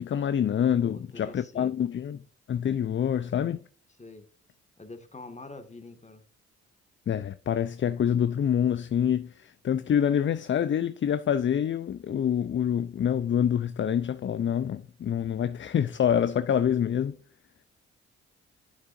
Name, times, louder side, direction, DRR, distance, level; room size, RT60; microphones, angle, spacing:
voice 1, 0.0-2.2 2.5-3.6 7.1-17.2, left 9 dB, 35° left, 0.5 m, -26 dB
voice 2, 0.8-1.7 4.0-4.3 4.8-6.2, left 3 dB, 20° left, 1.7 m, -45 dB
9.5 x 6.7 x 2.6 m
hypercardioid pair, 45°, 33 cm